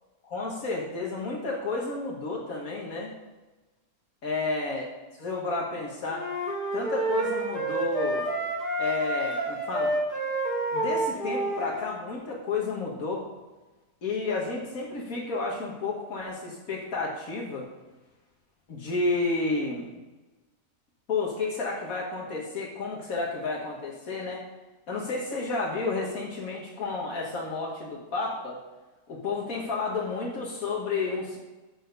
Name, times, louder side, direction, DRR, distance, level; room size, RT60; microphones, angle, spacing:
voice 1, 0.2-3.1 4.2-4.9 5.2-6.3 6.7-8.3 8.8-9.9 10.7-13.2 14.0-17.7 18.7-19.9 21.1-24.4 24.9-28.6 29.1-31.4, left 3 dB, 75° left, -3 dB, 1.7 m, -31 dB
sound 1, 6.1-11.9, right 1 dB, 30° left, 2.9 m, -29 dB
6.6 x 6.5 x 6.5 m, 1.2 s
omnidirectional pair, 1.5 m